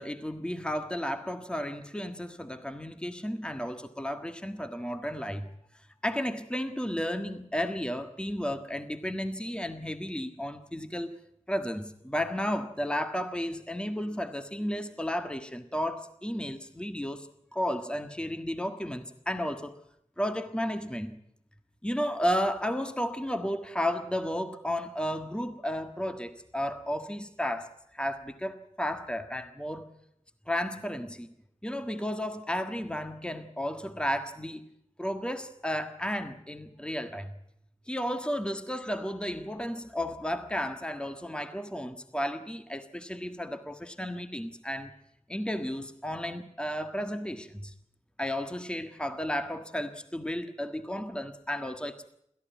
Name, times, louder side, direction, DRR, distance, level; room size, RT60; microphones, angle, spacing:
voice 1, 0.0-5.5 6.0-11.2 11.5-19.8 20.2-21.2 21.8-29.8 30.5-31.3 31.6-34.6 35.0-37.3 37.9-44.9 45.3-47.7 48.2-52.1, equal, 10° left, 1.6 m, -33 dB
28.0 x 14.0 x 9.3 m
wide cardioid pair, 70°, 12 cm